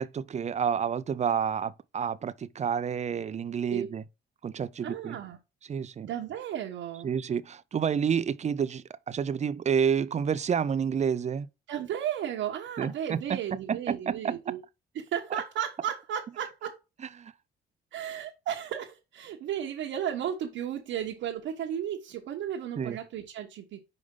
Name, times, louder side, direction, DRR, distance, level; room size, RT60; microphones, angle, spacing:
voice 1, 0.0-4.0 4.4-5.2 5.7-6.1 7.0-11.5 12.8-13.4 13.7-14.3 17.2-17.3 22.8-23.0, right 7 dB, 35° right, 0.5 m, -29 dB
voice 2, 4.8-5.4 6.0-7.1 11.7-14.6 14.9-16.8 17.9-23.8, right 9 dB, 80° right, 1.1 m, -34 dB
5.1 x 5.0 x 3.7 m
cardioid pair, 90°, 20 cm